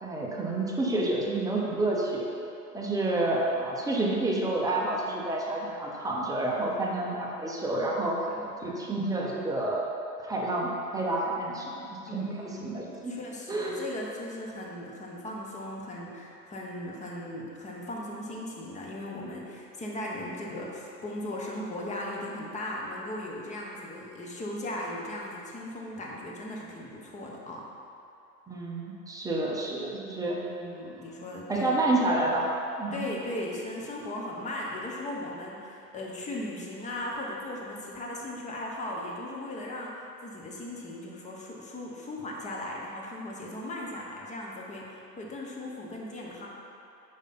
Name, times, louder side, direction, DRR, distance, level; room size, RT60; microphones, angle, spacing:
voice 1, 0.0-2.3 2.7-8.2 8.6-9.8 10.2-13.2 13.5-13.8 28.5-30.4 31.5-32.5 32.8-33.0, right 2 dB, 5° right, -3 dB, 0.8 m, -29 dB
voice 2, 12.1-27.7 30.2-31.7 32.9-46.5, left 1 dB, 15° left, -3 dB, 1.1 m, -38 dB
8.1 x 5.4 x 4.3 m, 2.8 s
hypercardioid pair, 110°, 48 cm